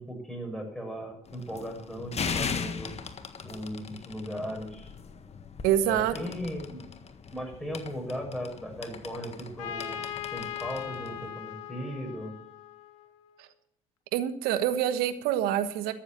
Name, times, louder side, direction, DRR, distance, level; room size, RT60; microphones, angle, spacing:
voice 1, 0.0-2.9 3.4-4.9 5.8-6.8 7.3-12.3, equal, ahead, 1 dB, 6.5 m, -37 dB
sound 1, 1.3-11.3, left 5 dB, 40° left, 1.6 m, -39 dB
voice 2, 5.6-6.1 13.4-13.5 14.1-15.9, right 11 dB, 75° right, 11 dB, 1.3 m, -26 dB
Trumpet, 9.6-13.3, left 10 dB, 85° left, 1.0 m, -39 dB
13.0 x 7.4 x 7.4 m, 0.74 s
hypercardioid pair, 55°, 16 cm